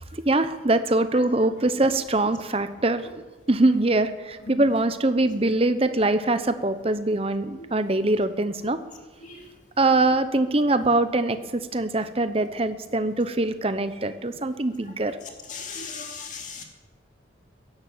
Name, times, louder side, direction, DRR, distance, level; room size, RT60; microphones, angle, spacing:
voice 1, 0.1-3.1 3.5-8.8 9.8-15.2, right 2 dB, 30° right, 11 dB, 0.9 m, -23 dB
voice 2, 15.5-16.6, left 5 dB, 40° left, 2 dB, 2.5 m, -36 dB
16.0 x 11.0 x 7.3 m, 1.2 s
head